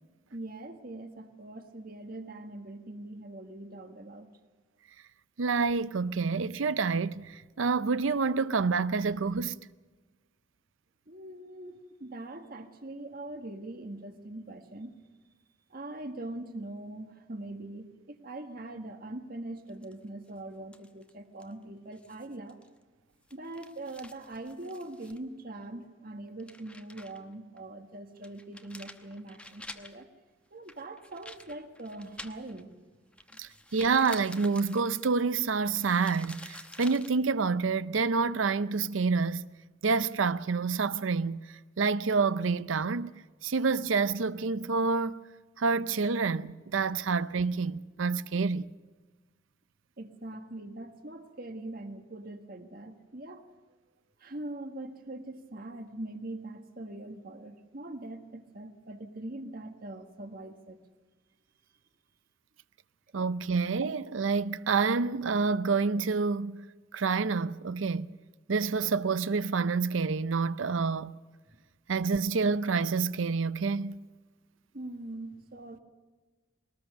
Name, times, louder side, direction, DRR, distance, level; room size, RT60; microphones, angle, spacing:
voice 1, 0.3-4.3 11.1-15.0 15.7-22.6 23.3-30.1 30.5-32.7 33.3-33.4 50.0-53.5 54.2-60.8 74.7-75.8, right 2 dB, 50° right, 1.6 m, -42 dB
voice 2, 5.4-9.6 33.4-39.5 39.8-43.1 43.4-45.2 45.6-48.7 63.1-66.7 66.9-68.1 68.5-71.1 71.9-74.0, right 4 dB, 85° right, 0.6 m, -28 dB
sound 1, 19.7-20.3 20.7-21.1 21.4-21.5 21.9-22.8 23.1-25.2 25.6-25.7 26.3-27.2 27.6-27.7 28.2-30.0 30.7-32.7 33.1-37.1, left 1 dB, 5° left, 0.9 m, -49 dB
21.0 x 19.0 x 6.7 m
head